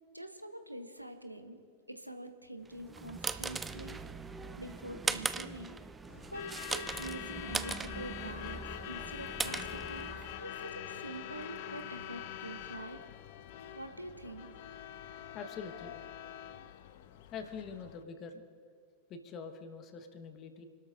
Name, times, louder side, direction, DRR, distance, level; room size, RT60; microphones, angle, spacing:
voice 1, 0.1-1.6 1.9-4.0 4.6-5.8 6.3-10.1 10.4-13.0 13.7-14.5, right 1 dB, 90° right, 8 dB, 0.9 m, -45 dB
sound 1, 2.7-10.5, right 4 dB, 15° right, 0.5 m, -39 dB
Truck / Alarm, 6.1-18.0, left 10 dB, 50° left, 0.6 m, -45 dB
voice 2, 15.3-15.9 17.3-18.4 19.1-20.7, left 5 dB, 35° left, 7 dB, 1.4 m, -44 dB
29.5 x 12.5 x 2.6 m, 2.2 s
figure-of-eight pair, 90°, 0 cm